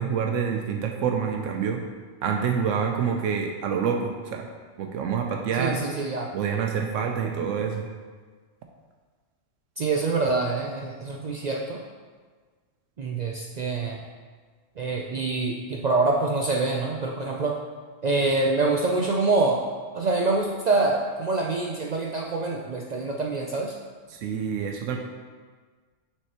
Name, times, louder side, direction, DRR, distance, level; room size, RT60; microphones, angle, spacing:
voice 1, 0.0-1.8 2.2-4.5 4.8-5.8 6.3-7.9 24.1-25.0, right 6 dB, 80° right, 3 dB, 0.9 m, -27 dB
voice 2, 5.6-6.3 9.8-11.8 13.0-14.0 14.8-17.6 18.0-19.6 19.9-23.7, right 3 dB, 65° right, -1 dB, 0.4 m, -25 dB
6.4 x 6.2 x 2.9 m, 1.5 s
omnidirectional pair, 1.3 m